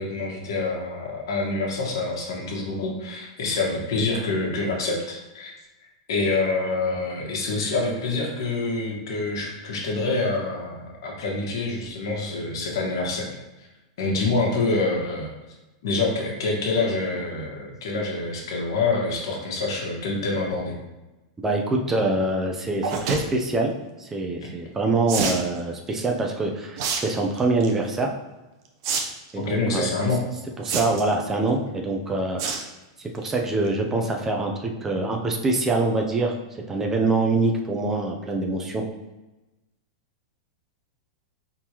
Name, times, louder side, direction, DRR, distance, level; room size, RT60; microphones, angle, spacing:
voice 1, 0.0-5.5 6.1-13.3 14.0-15.3 15.8-20.7 24.4-24.5 29.4-30.2, left 3 dB, 75° left, -1 dB, 1.4 m, -26 dB
voice 2, 21.4-28.1 29.3-29.9 30.6-32.4 33.0-36.4 36.7-38.8, right 2 dB, 15° right, 2 dB, 0.6 m, -25 dB
sound 1, 22.8-23.2 25.1-25.4 26.8-27.0 27.4-27.7 28.8-29.0 29.3-29.4 30.6-31.1 32.4-32.7 33.1-33.3 33.7-33.8 33.9-34.0, right 5 dB, 55° right, 0.8 m, -26 dB
4.4 x 3.6 x 3.0 m, 1.1 s
hypercardioid pair, 125°, 2 cm